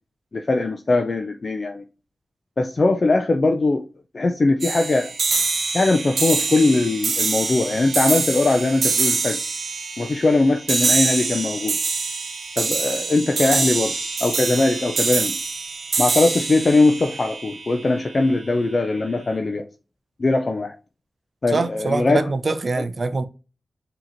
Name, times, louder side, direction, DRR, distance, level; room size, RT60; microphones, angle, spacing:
voice 1, 0.3-1.8 2.6-3.9 4.1-5.1 5.7-9.4 10.0-11.8 12.6-13.9 14.2-15.4 16.0-19.7 20.2-20.8 21.4-22.3 22.8-22.9, left 2 dB, 50° left, 0.4 m, -20 dB
sound 1, 4.6-18.1, right 4 dB, 75° right, 0.9 m, -25 dB
voice 2, 21.5-23.3, right 3 dB, 55° right, 0.5 m, -24 dB
4.8 x 2.9 x 2.6 m
cardioid pair, 55°, 0 cm